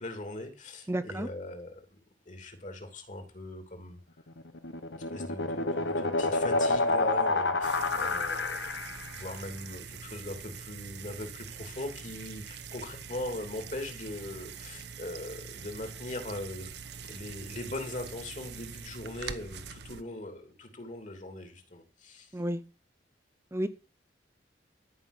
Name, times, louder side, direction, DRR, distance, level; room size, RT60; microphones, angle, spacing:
voice 1, 0.0-1.8 2.3-4.0 5.1-8.6 9.2-22.3, left 1 dB, 45° left, 6 dB, 2.9 m, -40 dB
voice 2, 0.9-1.3 22.3-22.6 23.5-23.7, right 1 dB, 15° right, 12 dB, 0.6 m, -31 dB
sound 1, 4.4-9.2, left 3 dB, 90° left, 1.2 m, -29 dB
sound 2, 7.6-20.0, right 6 dB, 70° right, 1.0 m, -44 dB
13.0 x 5.7 x 8.2 m, 0.35 s
head